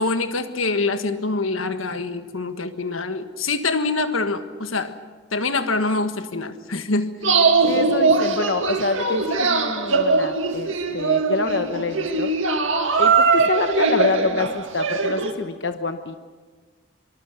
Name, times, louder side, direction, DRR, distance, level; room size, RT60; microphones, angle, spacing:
voice 1, 0.0-5.0 5.3-7.2, left 3 dB, 90° left, 9 dB, 1.6 m, -25 dB
sound 1, 7.2-15.3, right 4 dB, 80° right, 2.1 m, -21 dB
voice 2, 7.6-12.3 13.0-16.2, left 3 dB, 60° left, 7 dB, 1.0 m, -26 dB
25.5 x 23.5 x 6.8 m, 1.4 s
head